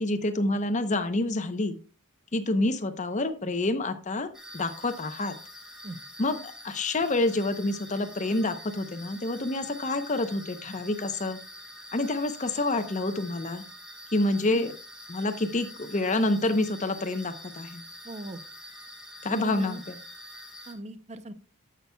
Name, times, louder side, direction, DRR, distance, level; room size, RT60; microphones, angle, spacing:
voice 1, 0.0-1.8 2.3-5.3 6.2-6.4 6.6-11.4 11.9-13.6 14.1-14.7 15.1-17.8 19.2-20.0, left 2 dB, 35° left, 10 dB, 0.8 m, -28 dB
sound 1, 4.3-20.7, equal, 5° right, 1.5 m, -46 dB
voice 2, 18.0-18.4 19.3-19.8 20.7-21.3, right 2 dB, 30° right, 12 dB, 0.6 m, -39 dB
15.0 x 6.0 x 2.3 m, 0.36 s
head